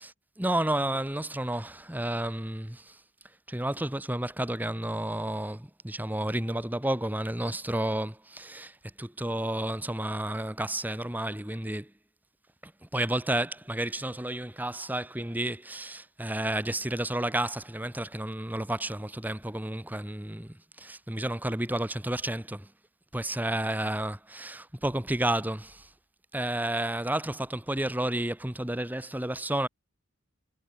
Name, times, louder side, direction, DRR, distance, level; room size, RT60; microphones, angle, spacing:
voice 1, 0.0-3.0 3.5-11.9 12.6-22.7 23.1-25.9 26.3-29.7, right 1 dB, 10° right, 1.2 m, -31 dB
head